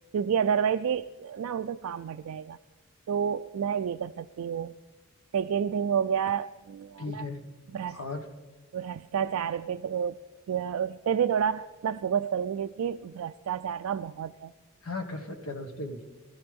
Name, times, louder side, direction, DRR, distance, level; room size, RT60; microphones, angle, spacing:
voice 1, 0.1-2.6 3.1-4.7 5.3-7.3 7.7-8.0 8.7-10.2 10.5-14.5, right 7 dB, 90° right, 8 dB, 0.3 m, -29 dB
voice 2, 7.0-7.5 7.9-8.3 14.8-16.0, left 2 dB, 85° left, 6 dB, 1.5 m, -36 dB
21.0 x 14.5 x 3.5 m, 1.2 s
head